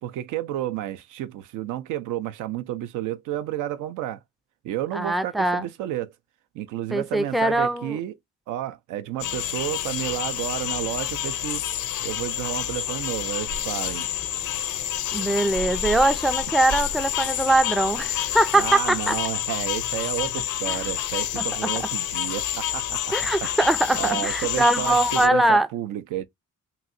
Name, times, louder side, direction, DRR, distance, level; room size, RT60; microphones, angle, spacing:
voice 1, 0.0-4.2 4.6-6.1 6.5-8.1 8.5-11.6 12.0-14.1 18.5-23.1 23.4-23.6 24.0-26.3, right 13 dB, 90° right, 0.5 m, -31 dB
voice 2, 4.9-5.7 6.9-8.0 15.1-19.2 20.7-20.9 21.3-21.4 23.1-25.7, right 1 dB, ahead, 0.3 m, -22 dB
sound 1, 9.2-25.3, left 12 dB, 80° left, 0.6 m, -28 dB
sound 2, 13.4-18.7, right 4 dB, 40° right, 0.6 m, -39 dB
3.0 x 2.7 x 2.5 m
cardioid pair, 90°, 30 cm